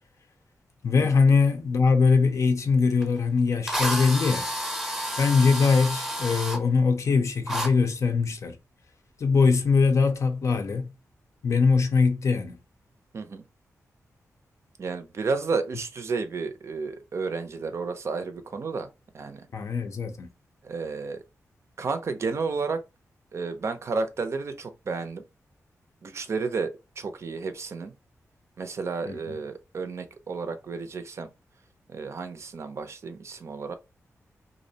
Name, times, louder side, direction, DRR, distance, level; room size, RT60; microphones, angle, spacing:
voice 1, 0.8-4.5 5.2-8.6 9.2-10.9 11.4-12.6 19.5-20.3 29.1-29.4, left 4 dB, 60° left, 0.5 m, -22 dB
Drill, 3.0-3.1 3.7-6.6 7.5-7.7, equal, 5° right, 0.6 m, -30 dB
voice 2, 14.8-18.9 19.1-19.4 20.6-21.2 21.8-22.8 23.3-25.2 26.0-27.9 28.6-31.3 31.9-33.7, right 4 dB, 55° right, 0.4 m, -32 dB
2.5 x 2.0 x 2.7 m
wide cardioid pair, 90°, 6 cm